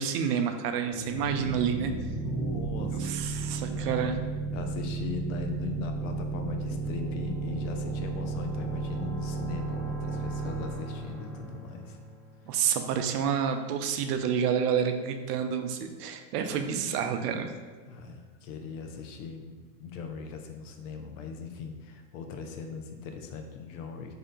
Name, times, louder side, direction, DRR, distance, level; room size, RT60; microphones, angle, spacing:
voice 1, 0.0-1.9 2.9-4.2 12.5-17.5, right 7 dB, 70° right, 7 dB, 0.6 m, -29 dB
sound 1, 0.9-12.5, right 4 dB, ahead, 0.4 m, -34 dB
voice 2, 2.0-3.3 3.7-4.0 4.5-12.0 17.9-24.1, left 5 dB, 50° left, 5 dB, 0.5 m, -39 dB
3.2 x 2.8 x 3.7 m, 1.4 s
hypercardioid pair, 115°, 49 cm